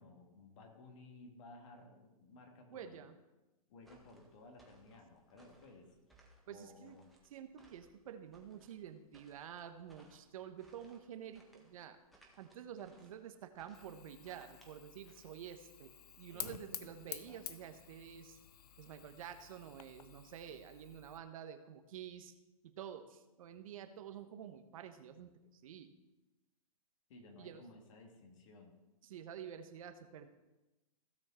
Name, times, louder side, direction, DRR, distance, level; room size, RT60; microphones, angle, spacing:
voice 1, 0.0-3.0 3.7-7.1 16.3-17.4 27.1-28.8, left 2 dB, 55° left, 3 dB, 2.6 m, -57 dB
voice 2, 2.7-3.1 6.5-7.0 7.3-12.0 12.4-18.4 18.8-22.3 22.6-25.9 27.4-27.6 29.1-30.3, right 9 dB, 65° right, 8 dB, 1.2 m, -49 dB
sound 1, 3.8-15.8, right 2 dB, ahead, 1.7 m, -67 dB
Fire, 13.7-21.2, left 8 dB, 90° left, 0.7 m, -51 dB
16.0 x 6.5 x 4.3 m, 1.0 s
hypercardioid pair, 140°, 19 cm